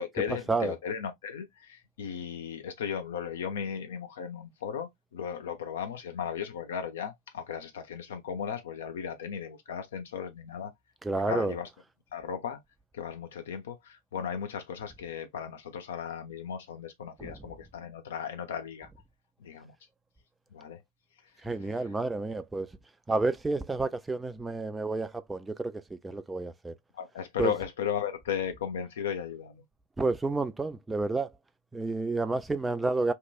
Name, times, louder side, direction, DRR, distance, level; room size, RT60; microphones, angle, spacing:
voice 1, 0.0-10.7 11.1-11.7 12.1-12.6 12.9-18.9 19.4-19.8 20.5-20.8 26.9-29.6, left 8 dB, 60° left, 0.6 m, -36 dB
voice 2, 11.0-11.5 17.2-17.4 21.4-22.7 23.1-26.7 27.4-27.5 30.0-31.3 31.7-33.1, right 3 dB, 10° right, 0.3 m, -30 dB
2.9 x 2.2 x 2.4 m
figure-of-eight pair, 90°, 0 cm